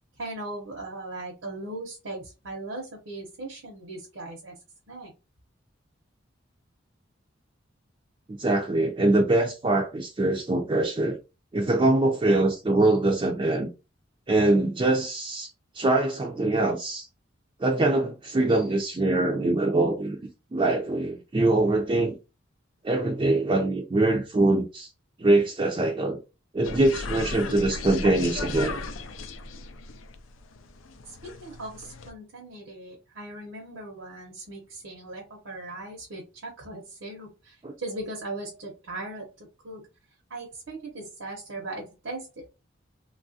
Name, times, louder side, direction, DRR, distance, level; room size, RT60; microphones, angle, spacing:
voice 1, 0.2-4.5 4.9-5.1 31.1-39.9 40.3-42.5, right 2 dB, 85° right, 0.8 m, -39 dB
voice 2, 8.3-11.2 11.5-13.7 14.3-17.1 17.6-20.2 20.5-22.2 22.8-24.9 25.2-26.2 26.5-28.8 37.6-37.7, right 2 dB, 25° right, 0.4 m, -23 dB
sound 1, 26.6-32.1, left 3 dB, 90° left, 0.4 m, -36 dB
3.1 x 2.3 x 2.6 m
head